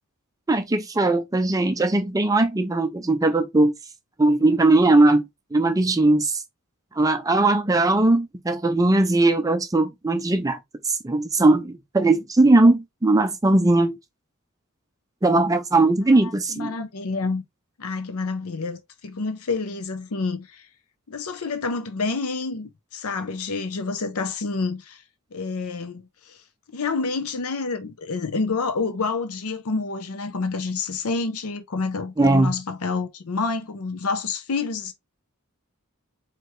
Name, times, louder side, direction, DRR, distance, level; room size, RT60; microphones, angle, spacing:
voice 1, 0.5-3.7 4.2-6.4 7.0-10.6 10.8-14.0 15.2-16.7 32.2-32.5, right 2 dB, 15° right, 0.5 m, -19 dB
voice 2, 16.1-17.4 17.8-20.7 21.1-25.0 25.3-26.4 26.7-34.9, left 4 dB, 75° left, 0.7 m, -28 dB
4.7 x 3.1 x 3.1 m
head